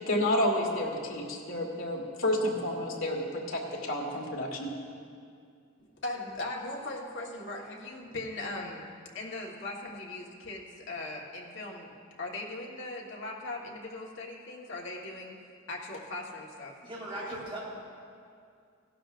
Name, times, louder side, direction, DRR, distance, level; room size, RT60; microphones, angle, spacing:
voice 1, 0.1-4.7, left 1 dB, 80° left, -2 dB, 1.5 m, -30 dB
voice 2, 5.8-16.8 17.1-17.3, left 2 dB, 60° left, -1 dB, 1.4 m, -39 dB
voice 3, 16.8-17.6, right 1 dB, 25° right, -5 dB, 2.9 m, -38 dB
16.0 x 12.0 x 2.5 m, 2.3 s
head